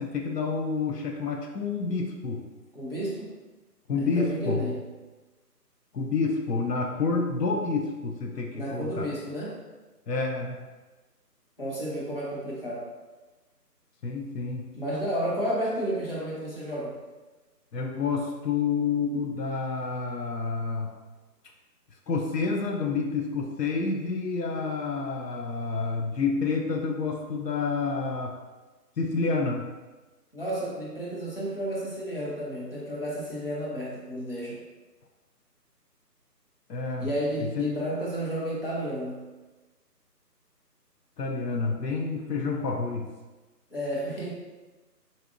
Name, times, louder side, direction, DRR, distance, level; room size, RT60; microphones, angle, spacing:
voice 1, 0.0-2.5 3.9-4.7 5.9-9.1 10.1-10.7 14.0-14.7 17.7-21.0 22.1-28.4 29.0-29.7 36.7-37.1 37.4-37.7 41.2-43.1, left 4 dB, 75° left, 2 dB, 0.6 m, -29 dB
voice 2, 2.7-3.3 4.0-4.8 8.5-9.6 11.6-12.9 14.7-17.0 30.3-34.6 37.0-39.2 43.7-44.3, equal, 35° left, -5 dB, 0.8 m, -32 dB
4.1 x 2.9 x 2.5 m, 1.2 s
figure-of-eight pair, 170°, 49 cm